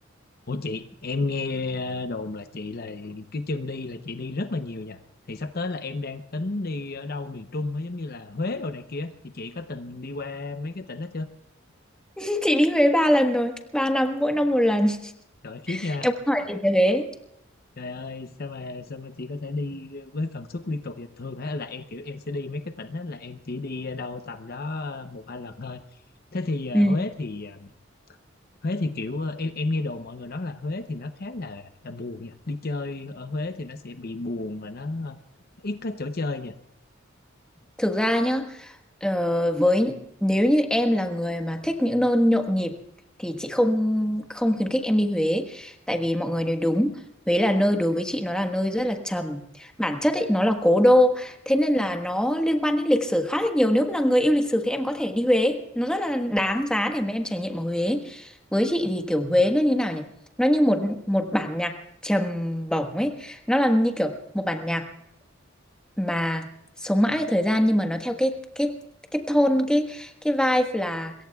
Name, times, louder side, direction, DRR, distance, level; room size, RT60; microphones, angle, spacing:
voice 1, 0.5-5.0 5.3-11.3 15.4-16.1 17.8-26.0 26.3-27.7 28.6-35.2 35.6-36.6, left 3 dB, 50° left, 8 dB, 0.8 m, -32 dB
voice 2, 12.2-15.1 15.7-17.1 26.7-27.0 37.8-38.7 39.0-40.0 40.2-42.7 43.2-47.0 47.3-60.1 60.4-61.8 62.0-64.9 66.0-66.5 66.8-68.7 69.1-71.1, equal, 5° left, 4 dB, 1.5 m, -23 dB
26.0 x 22.5 x 2.4 m, 0.79 s
head